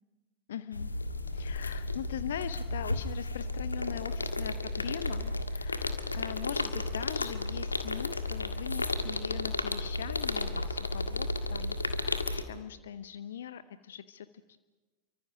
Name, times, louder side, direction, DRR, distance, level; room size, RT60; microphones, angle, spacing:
voice 1, 0.5-0.9 1.3-14.6, left 9 dB, 60° left, 13 dB, 0.9 m, -41 dB
sound 1, 0.7-12.4, left 2 dB, 80° left, 1.7 m, -33 dB
29.5 x 24.5 x 6.0 m, 1.2 s
figure-of-eight pair, 90°, 0 cm